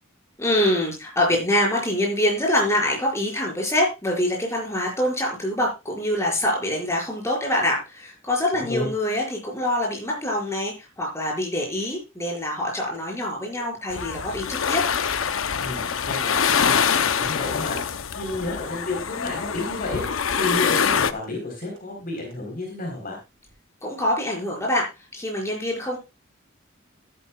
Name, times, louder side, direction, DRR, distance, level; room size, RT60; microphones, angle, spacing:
voice 1, 0.4-14.9 23.8-26.0, left 1 dB, 15° left, -1 dB, 5.7 m, -25 dB
voice 2, 8.5-8.9 15.6-17.8 18.2-23.2, left 2 dB, 45° left, 1 dB, 3.9 m, -31 dB
sound 1, 12.2-12.4 12.8-13.0 13.4-13.7 14.1-14.3 14.8-15.0 15.4-15.6 16.1-16.2 16.6-16.9 17.2-17.4 17.8-18.0 18.3-18.6 18.9-19.1 19.5-19.6 20.0-20.2 20.5-20.7 21.1-21.3 21.6-21.8 22.2-22.8 23.3-23.5, right 1 dB, 65° right, 4.7 m, -45 dB
sound 2, 13.9-21.1, left 7 dB, 75° left, 0.7 m, -24 dB
13.0 x 12.0 x 2.3 m, 0.26 s
head